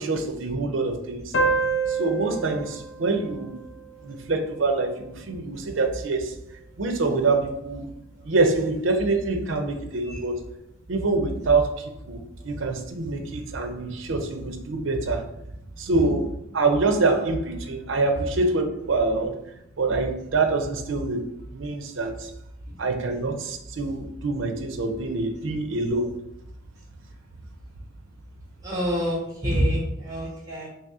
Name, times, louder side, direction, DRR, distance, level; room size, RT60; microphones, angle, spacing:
voice 1, 0.0-1.4 1.9-3.6 4.0-6.3 6.8-7.9 8.2-10.4 10.9-15.2 15.8-19.4 19.8-21.3 21.5-22.3 22.8-26.1, right 3 dB, 65° right, 5 dB, 0.5 m, -25 dB
sound 1, 1.3-4.5, right 4 dB, 65° left, 0.4 m, -28 dB
voice 2, 28.6-30.7, equal, 15° right, -4 dB, 1.3 m, -26 dB
3.1 x 2.8 x 3.5 m, 0.78 s
head